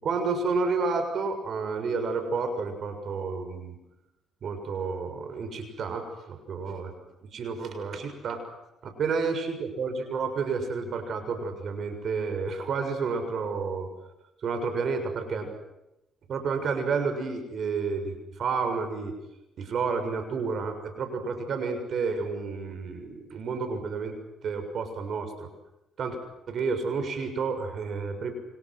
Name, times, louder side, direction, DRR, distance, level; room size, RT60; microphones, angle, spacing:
voice 1, 0.0-3.7 4.4-6.9 7.3-8.5 8.8-13.9 14.4-15.5 16.3-19.1 19.6-24.1 24.4-25.5 26.0-26.2 26.5-28.3, right 4 dB, 60° right, 7 dB, 6.7 m, -30 dB
29.0 x 28.5 x 6.3 m, 0.92 s
cardioid pair, 90°, 0 cm